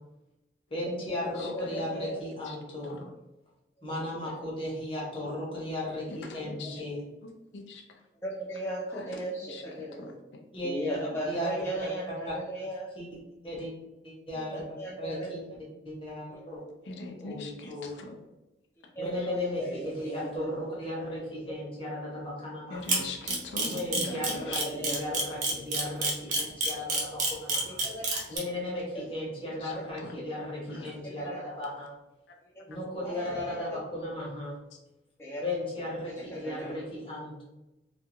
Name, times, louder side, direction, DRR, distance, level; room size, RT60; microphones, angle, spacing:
voice 1, 0.7-3.0 3.8-7.0 10.5-11.5 11.7-12.3 13.0-13.1 13.4-13.7 14.0-15.4 15.8-16.6 17.2-17.9 19.0-23.1 23.6-27.8 28.3-31.9 32.7-34.5 35.4-37.4, left 1 dB, 30° left, -4 dB, 0.8 m, -36 dB
voice 2, 1.2-2.2 8.2-10.1 10.6-12.9 14.3-15.3 16.3-16.6 19.0-20.5 24.1-24.2 24.5-25.2 27.7-28.1 28.9-29.0 29.8-29.9 31.0-31.4 32.6-32.7 33.0-33.7 35.2-35.4 36.2-36.8, right 1 dB, 15° left, -5 dB, 0.4 m, -37 dB
voice 3, 6.1-6.8 7.2-7.8 8.9-9.2 9.5-9.6 10.0-10.1 16.8-18.1 22.7-24.6 28.1-28.4 29.6-29.7 30.0-30.1 30.7-30.9, left 3 dB, 90° left, 2 dB, 0.4 m, -41 dB
Camera, 22.9-28.4, right 3 dB, 45° right, 0.6 m, -27 dB
2.4 x 2.2 x 2.9 m, 0.98 s
head